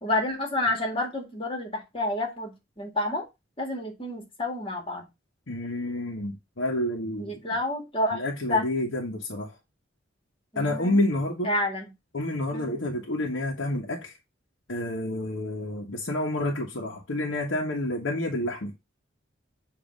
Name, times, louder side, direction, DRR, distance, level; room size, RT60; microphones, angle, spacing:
voice 1, 0.0-3.3 3.6-5.1 7.2-8.7 10.5-11.0 11.4-11.9 12.5-12.8, left 1 dB, 30° left, 1.9 m, -29 dB
voice 2, 5.5-7.4 8.1-9.5 10.5-11.5 12.1-14.2 14.7-18.7, left 1 dB, 80° left, 1.1 m, -29 dB
7.2 x 2.8 x 5.1 m
head